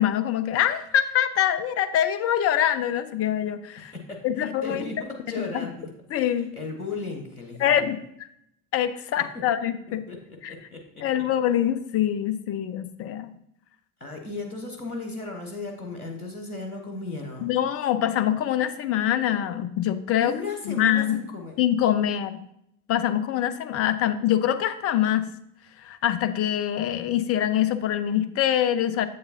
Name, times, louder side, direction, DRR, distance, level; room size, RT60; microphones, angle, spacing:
voice 1, 0.0-3.9 4.2-4.8 5.5-5.7 6.1-6.5 7.6-8.0 8.7-10.0 10.4-10.5 11.0-13.3 17.4-20.4 20.6-21.2 21.6-22.4 22.9-25.3 25.8-29.1, left 10 dB, 35° left, 11 dB, 0.6 m, -24 dB
voice 2, 3.8-5.9 6.3-7.8 9.3-9.4 9.9-10.2 10.5-10.8 14.0-17.5 20.2-21.5, left 3 dB, 85° left, 2 dB, 1.0 m, -35 dB
7.8 x 6.6 x 2.7 m, 0.76 s
figure-of-eight pair, 60°, 43 cm